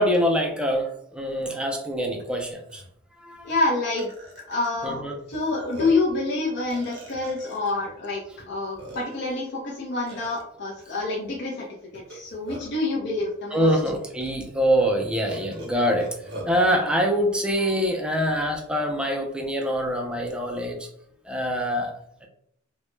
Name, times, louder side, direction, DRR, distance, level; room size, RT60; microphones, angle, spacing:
voice 1, 0.0-2.8 3.2-3.5 4.8-5.2 13.5-16.2 16.5-20.9 21.3-22.3, equal, 5° right, 1 dB, 0.3 m, -24 dB
Burping eructation, 2.2-2.3 2.7-2.9 3.5-3.6 4.0-4.7 5.3-5.4 5.7-6.1 6.7-7.7 8.4-8.5 8.8-9.3 10.1-10.4 11.9-12.8 13.7-13.8 14.2-14.3 15.3-16.6, right 1 dB, 55° right, 0.7 m, -40 dB
voice 2, 3.4-4.1 4.5-5.0 5.3-11.6 11.9-13.7, left 2 dB, 55° left, -3 dB, 0.5 m, -27 dB
2.1 x 2.0 x 3.0 m, 0.71 s
head